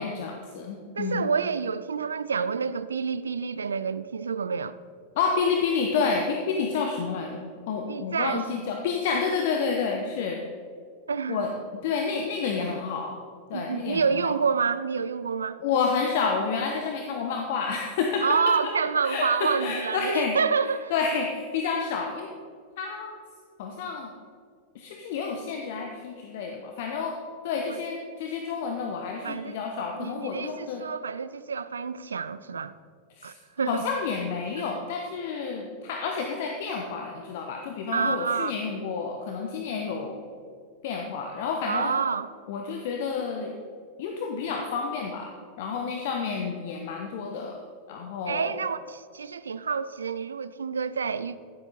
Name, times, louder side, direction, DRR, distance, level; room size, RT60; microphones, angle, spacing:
voice 1, 0.0-1.3 5.1-10.4 11.3-11.5 11.8-13.2 13.5-14.3 15.6-18.5 19.0-20.4 20.9-22.3 22.8-23.1 23.6-24.1 24.7-27.2 27.4-30.8 33.2-33.3 33.7-40.2 40.8-41.9 42.5-43.5 44.0-45.3 45.6-47.6 47.9-48.6, left 5 dB, 50° left, 1.0 m, -29 dB
voice 2, 1.0-4.8 7.9-8.5 11.1-11.5 13.5-15.6 18.2-21.3 27.7-27.8 29.2-29.6 30.0-32.7 33.2-33.8 34.6-34.7 37.9-38.5 41.6-42.3 48.3-51.4, right 5 dB, 70° right, 0.4 m, -28 dB
15.5 x 8.0 x 4.3 m
figure-of-eight pair, 90°, 0 cm